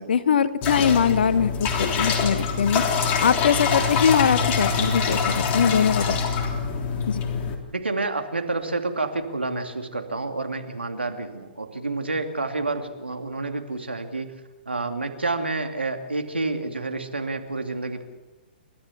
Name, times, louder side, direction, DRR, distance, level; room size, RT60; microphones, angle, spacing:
voice 1, 0.0-2.8 3.2-6.1 7.1-7.2, left 7 dB, 65° left, 13 dB, 1.3 m, -22 dB
sound 1, 0.6-7.5, left 5 dB, 30° left, 3.4 m, -25 dB
voice 2, 7.7-14.3 14.7-18.0, right 3 dB, 85° right, 4 dB, 2.8 m, -29 dB
29.5 x 13.5 x 7.4 m, 1.2 s
figure-of-eight pair, 120°, 6 cm